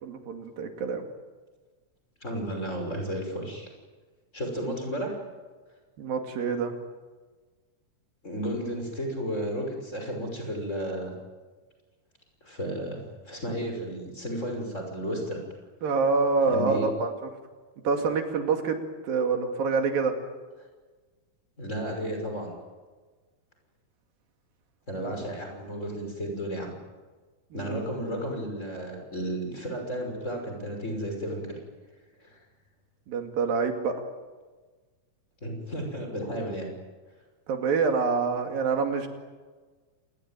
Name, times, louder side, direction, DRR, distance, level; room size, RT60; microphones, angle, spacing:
voice 1, 0.0-1.0 6.0-6.7 15.8-17.3 17.8-18.8 19.0-20.1 25.0-25.1 27.5-27.8 33.1-33.9 37.5-39.1, right 4 dB, 80° right, 5 dB, 4.2 m, -26 dB
voice 2, 2.2-3.7 4.3-5.2 8.2-11.1 12.4-15.4 16.5-16.9 21.6-22.5 24.9-26.8 27.5-31.4 32.2-32.4 35.4-36.7, equal, 20° left, 2 dB, 6.1 m, -33 dB
27.5 x 21.0 x 9.1 m, 1.3 s
omnidirectional pair, 4.0 m